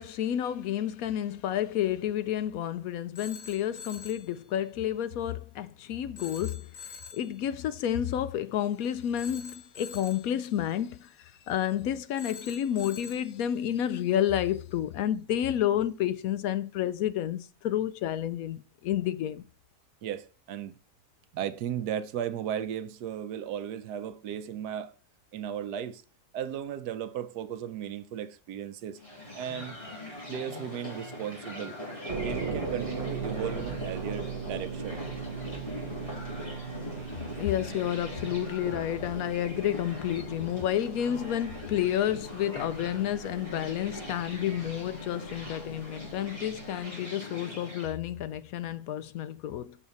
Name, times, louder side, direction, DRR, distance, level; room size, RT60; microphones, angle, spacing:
voice 1, 0.0-6.7 7.1-11.1 11.5-19.4 37.3-49.8, left 11 dB, 70° left, 0.9 m, -30 dB
Telephone, 3.2-4.3 6.2-7.3 9.2-10.3 12.2-13.3, left 6 dB, 50° left, 1.2 m, -45 dB
voice 2, 20.0-20.8 21.3-24.9 25.3-26.0 26.3-29.0 29.3-29.8 30.3-31.8 32.2-35.0, right 9 dB, 85° right, 1.3 m, -35 dB
sound 1, 29.0-47.9, left 1 dB, 20° left, 3.9 m, -41 dB
sound 2, 32.1-46.9, right 6 dB, 40° right, 1.2 m, -40 dB
7.1 x 6.6 x 4.1 m
omnidirectional pair, 1.7 m